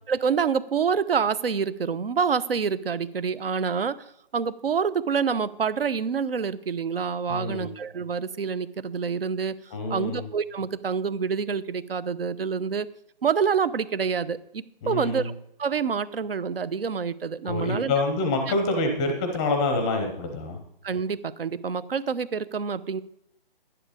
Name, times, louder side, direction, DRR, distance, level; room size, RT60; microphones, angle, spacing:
voice 1, 0.1-4.1 4.3-12.9 13.2-15.3 15.6-17.9 20.8-23.0, right 6 dB, 75° right, 15 dB, 0.9 m, -27 dB
voice 2, 7.3-7.7 9.7-10.3 14.8-15.3 17.4-20.6, left 2 dB, 5° left, 5 dB, 0.6 m, -26 dB
11.0 x 10.0 x 4.9 m, 0.73 s
hypercardioid pair, 165°, 29 cm